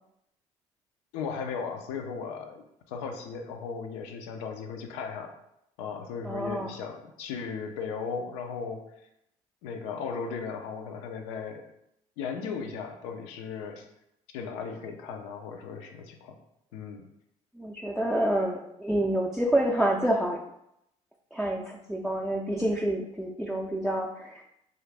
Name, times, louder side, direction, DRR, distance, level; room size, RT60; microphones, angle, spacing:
voice 1, 1.1-5.3 5.8-8.9 9.6-11.6 12.2-13.9 14.3-16.4 16.7-17.0, left 5 dB, 80° left, 4 dB, 0.5 m, -36 dB
voice 2, 6.2-6.7 17.5-20.4 21.3-24.4, right 1 dB, ahead, -2 dB, 0.4 m, -28 dB
2.5 x 2.5 x 3.2 m, 0.78 s
hypercardioid pair, 65°, 16 cm